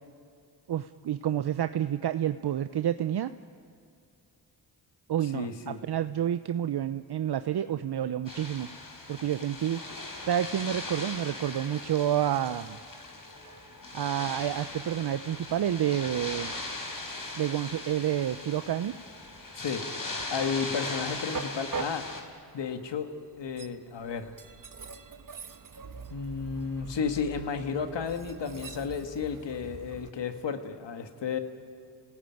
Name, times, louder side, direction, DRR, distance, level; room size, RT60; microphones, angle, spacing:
voice 1, 0.7-3.3 5.1-8.7 9.1-9.8 10.2-12.8 13.9-16.5 17.4-18.9, right 10 dB, 65° right, 11 dB, 0.7 m, -29 dB
voice 2, 5.3-5.8 19.5-19.8 20.3-22.0 22.5-24.3 26.1-31.4, left 6 dB, 75° left, 7 dB, 1.9 m, -33 dB
sound 1, 8.3-22.2, left 2 dB, 50° left, 4.5 m, -39 dB
Train, 13.3-30.1, right 5 dB, 45° right, 1.4 m, -45 dB
28.0 x 18.5 x 9.3 m, 2.5 s
cardioid pair, 45°, 43 cm